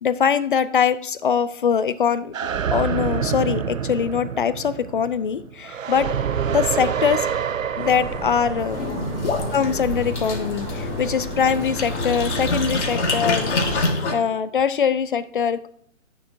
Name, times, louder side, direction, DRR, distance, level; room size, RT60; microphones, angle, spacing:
voice 1, 0.0-2.4 2.7-6.1 6.5-7.3 7.8-8.8 9.5-15.7, left 7 dB, 45° left, 15 dB, 0.5 m, -22 dB
sound 1, 2.3-10.0, right 8 dB, 85° right, 0.6 m, -27 dB
sound 2, 7.8-13.9, right 3 dB, 25° right, 2.2 m, -32 dB
sound 3, 8.6-14.1, left 3 dB, 60° left, 2.1 m, -26 dB
11.0 x 6.9 x 2.6 m, 0.65 s
figure-of-eight pair, 135°, 39 cm